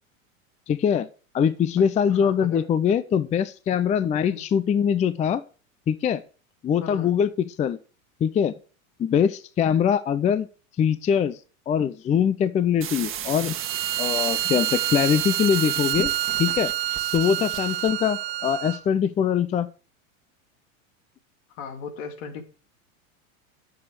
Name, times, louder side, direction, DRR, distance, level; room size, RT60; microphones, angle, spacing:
voice 1, 0.7-1.1 1.3-5.4 5.9-6.2 6.6-7.3 7.6-7.8 8.2-8.5 9.0-10.5 10.8-11.4 11.7-13.6 14.0-16.1 16.4-16.7 17.1-19.7, left 8 dB, 20° left, 0.5 m, -22 dB
voice 2, 1.8-2.7 4.1-4.4 6.8-7.1 21.5-22.4, left 6 dB, 65° left, 2.5 m, -38 dB
sound 1, 12.8-17.9, right 10 dB, 30° right, 1.6 m, -34 dB
Bowed string instrument, 13.5-18.8, right 14 dB, 65° right, 1.2 m, -28 dB
11.5 x 7.1 x 4.8 m
hypercardioid pair, 105°, 41 cm